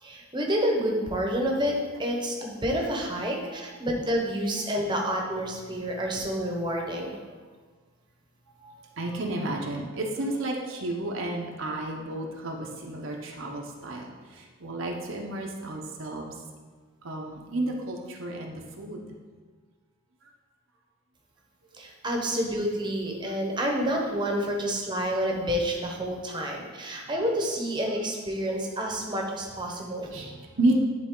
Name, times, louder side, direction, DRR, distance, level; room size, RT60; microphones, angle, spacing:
voice 1, 0.0-7.2 21.7-30.1, equal, 20° right, 0 dB, 1.0 m, -29 dB
voice 2, 8.6-14.0 14.4-16.3 17.0-19.0 30.1-30.9, right 1 dB, 60° right, 0 dB, 0.9 m, -31 dB
11.0 x 4.1 x 3.8 m, 1.5 s
head